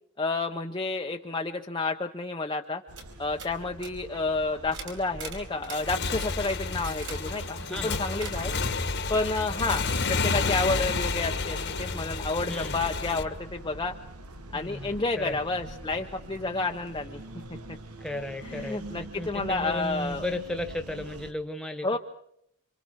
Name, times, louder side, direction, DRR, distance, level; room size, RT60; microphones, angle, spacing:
voice 1, 0.2-2.8 3.2-8.5 9.1-13.9 14.5-17.2 17.7-17.8 18.4-20.3 21.8-22.0, left 3 dB, 20° left, 2 dB, 0.9 m, -30 dB
sound 1, 2.6-2.7 3.0-3.1 3.4-3.5 3.8-3.9 4.7-5.8 6.2-6.5 6.8-7.2 8.2-8.4 9.7-10.1, right 5 dB, 60° right, 5.0 m, -41 dB
sound 2, 2.9-21.3, right 1 dB, 90° right, 1.6 m, -44 dB
Motorcycle / Engine, 5.6-13.2, left 4 dB, 50° left, 1.5 m, -30 dB
voice 2, 7.6-8.0 12.5-12.8 14.5-15.4 18.0-22.0, left 1 dB, ahead, 6 dB, 1.7 m, -35 dB
28.0 x 26.5 x 4.8 m, 0.73 s
head